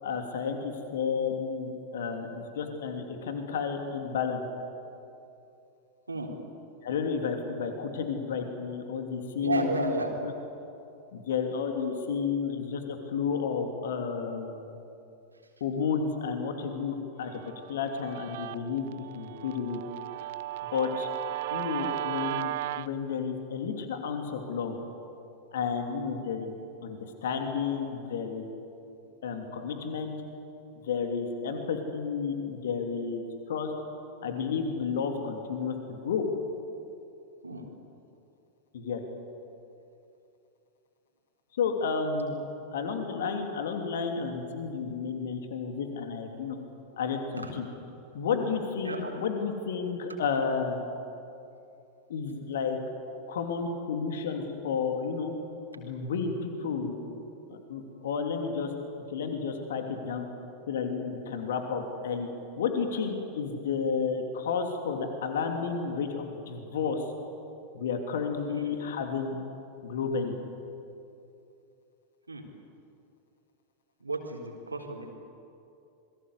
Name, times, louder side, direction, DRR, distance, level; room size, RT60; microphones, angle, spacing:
voice 1, 0.0-4.4 6.8-9.9 10.2-10.3 11.1-14.6 15.6-17.4 17.7-19.8 20.7-21.1 21.5-24.8 25.5-26.5 26.8-28.4 29.2-30.1 30.8-33.7 34.2-36.2 38.7-39.0 41.6-42.3 42.7-46.6 47.0-47.7 48.1-50.9 52.1-52.8 53.3-55.3 55.8-56.9 57.5-58.7 59.1-60.3 60.7-62.3 62.6-67.0 67.7-69.4 69.8-70.4, left 5 dB, 60° left, 4 dB, 2.9 m, -31 dB
voice 2, 6.1-6.4 9.4-10.2 37.4-37.7 47.4-47.5 48.8-49.1 68.5-68.8 72.3-72.5 74.0-75.1, right 3 dB, 80° right, 1 dB, 3.8 m, -33 dB
Guitar, 17.3-22.9, right 15 dB, 50° right, 0.6 m, -36 dB
27.0 x 22.0 x 8.2 m, 2.7 s
figure-of-eight pair, 90°, 0 cm